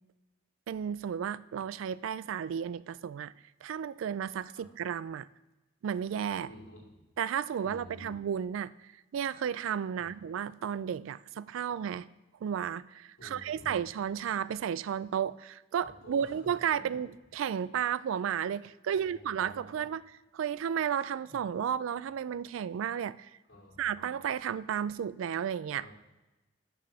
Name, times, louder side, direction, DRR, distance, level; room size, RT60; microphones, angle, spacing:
voice 1, 0.7-3.3 3.6-5.3 5.8-6.5 7.2-12.1 12.4-20.0 20.3-23.4 23.8-25.9, right 8 dB, 85° right, 18 dB, 0.3 m, -33 dB
voice 2, 6.4-7.0 7.6-8.2 10.0-10.1 13.2-13.8 15.8-16.9 18.9-19.9 21.3-21.4 23.5-24.0 25.7-25.9, left 1 dB, 70° left, -4 dB, 2.8 m, -51 dB
6.9 x 6.1 x 6.7 m, 1.0 s
head